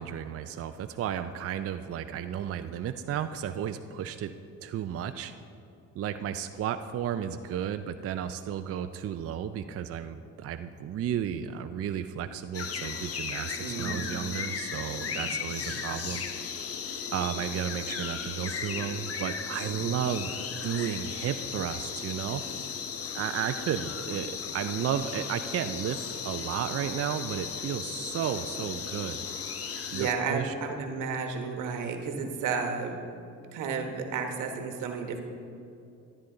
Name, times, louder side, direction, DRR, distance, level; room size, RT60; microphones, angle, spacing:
voice 1, 0.0-4.3 4.6-5.3 5.9-16.3 17.1-22.4 23.1-29.2 29.9-30.5, right 9 dB, 50° right, 8 dB, 0.4 m, -33 dB
sound 1, 12.5-30.1, left 6 dB, 50° left, 0.9 m, -36 dB
voice 2, 13.6-14.0 14.8-15.8 19.6-20.0 29.7-33.0 33.5-35.2, right 5 dB, 90° right, 4 dB, 1.2 m, -33 dB
13.0 x 9.9 x 3.8 m, 2.6 s
cardioid pair, 90°, 30 cm